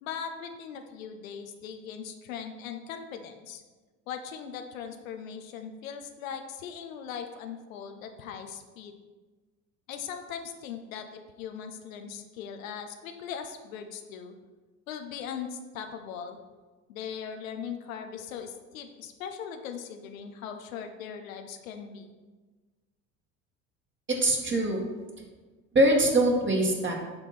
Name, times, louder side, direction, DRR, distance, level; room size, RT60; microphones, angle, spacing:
voice 1, 0.0-3.6 4.1-9.0 9.9-14.3 14.9-16.4 16.9-22.1, left 7 dB, 85° left, 6 dB, 0.7 m, -39 dB
voice 2, 24.1-24.8 25.7-26.9, right 1 dB, 30° right, 0 dB, 1.6 m, -23 dB
6.9 x 3.6 x 5.9 m, 1.3 s
hypercardioid pair, 75°, 39 cm